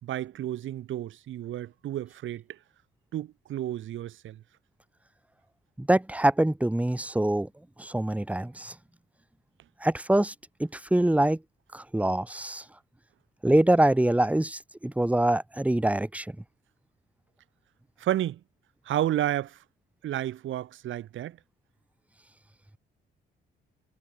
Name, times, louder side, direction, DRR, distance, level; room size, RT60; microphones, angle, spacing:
voice 1, 0.0-2.6 3.1-4.4 18.0-18.4 18.9-19.6 20.0-21.4, right 12 dB, 75° right, 3.9 m, -31 dB
voice 2, 5.8-7.5 7.8-8.7 9.8-10.3 10.6-11.4 11.7-12.6 13.4-16.3, right 1 dB, 5° right, 2.7 m, -24 dB
cardioid pair, 90°, 20 cm